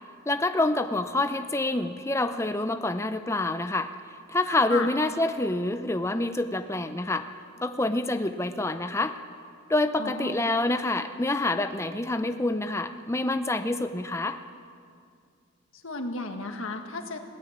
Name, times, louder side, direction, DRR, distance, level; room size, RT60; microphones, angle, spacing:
voice 1, 0.3-3.9 4.3-7.3 7.6-9.2 9.7-14.4, left 2 dB, 15° left, 9 dB, 0.6 m, -27 dB
voice 2, 10.0-10.4 15.7-17.2, left 3 dB, 70° left, 5 dB, 1.8 m, -33 dB
21.0 x 17.0 x 7.3 m, 2.3 s
head